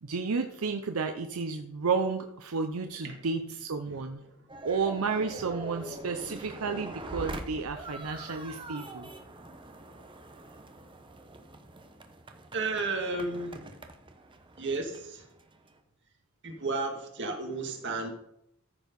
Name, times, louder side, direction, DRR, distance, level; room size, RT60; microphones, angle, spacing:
voice 1, 0.0-4.2 4.6-9.1, right 4 dB, 85° right, 6 dB, 0.7 m, -32 dB
sound 1, 4.5-15.8, right 2 dB, 25° right, 0.9 m, -44 dB
voice 2, 12.5-13.6 14.6-15.2 16.4-18.1, right 3 dB, 60° right, 3 dB, 1.8 m, -33 dB
14.0 x 4.6 x 5.3 m, 0.81 s
head